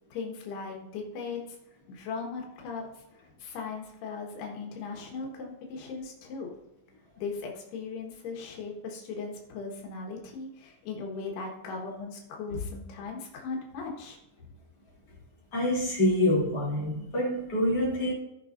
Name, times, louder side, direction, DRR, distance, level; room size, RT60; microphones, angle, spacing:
voice 1, 0.1-1.4 1.9-6.5 7.2-14.2, left 4 dB, 85° left, 0 dB, 3.5 m, -38 dB
voice 2, 15.5-18.1, left 1 dB, 40° left, -6 dB, 3.8 m, -26 dB
17.0 x 6.2 x 2.6 m, 0.90 s
omnidirectional pair, 4.5 m